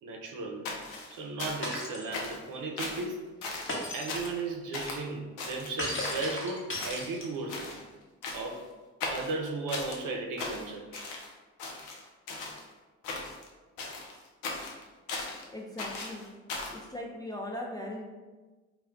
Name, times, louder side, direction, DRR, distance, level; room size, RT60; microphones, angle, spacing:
voice 1, 0.0-0.7 1.1-3.2 3.9-7.7 8.3-8.7 9.1-11.1, right 3 dB, 55° right, 2 dB, 0.6 m, -36 dB
sound 1, 0.7-1.8 2.1-2.5 2.8-3.1 3.4-3.8 4.1-4.4 4.7-5.0 5.4-6.5 6.8-7.2 7.5-7.8 8.2-8.6 9.0-10.0 10.4-11.3 11.6-12.6 13.0-13.5 13.8-15.4 15.8-16.8, left 3 dB, 80° left, 0.6 m, -38 dB
Shatter, 1.6-2.1 3.7-4.2 5.8-7.5, left 1 dB, 35° left, 0.9 m, -35 dB
voice 2, 15.5-16.2 16.7-18.0, left 1 dB, 10° left, -2 dB, 0.4 m, -39 dB
2.3 x 2.1 x 3.6 m, 1.3 s
hypercardioid pair, 50°, 37 cm